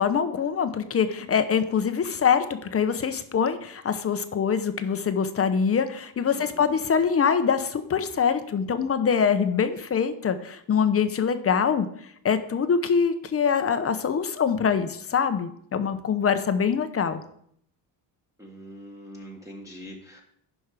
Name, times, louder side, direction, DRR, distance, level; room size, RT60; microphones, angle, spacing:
voice 1, 0.0-11.9 12.2-17.2, left 6 dB, 30° left, 10 dB, 0.8 m, -24 dB
voice 2, 6.3-6.7 18.4-20.2, equal, 5° right, -2 dB, 1.4 m, -43 dB
10.5 x 5.4 x 4.9 m, 0.67 s
cardioid pair, 115°, 44 cm